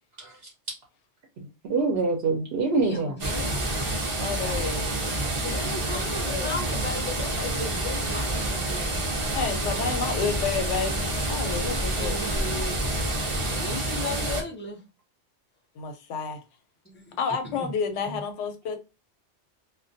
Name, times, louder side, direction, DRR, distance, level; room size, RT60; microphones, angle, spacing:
voice 1, 1.4-3.3 9.2-9.3, right 3 dB, 65° right, 0.8 m, -26 dB
voice 2, 2.7-3.7 5.4-9.0 11.5-11.6 11.9-12.8 13.5-14.8 16.9-17.2 17.4-17.7 18.1-18.2, left 2 dB, 15° left, 0.4 m, -36 dB
sound 1, 3.2-14.4, right 1 dB, 40° right, 0.5 m, -28 dB
voice 3, 4.2-4.9 5.9-6.5 9.3-12.2 15.8-16.4 17.2-18.8, left 5 dB, 85° left, 0.9 m, -30 dB
2.3 x 2.1 x 2.5 m
omnidirectional pair, 1.2 m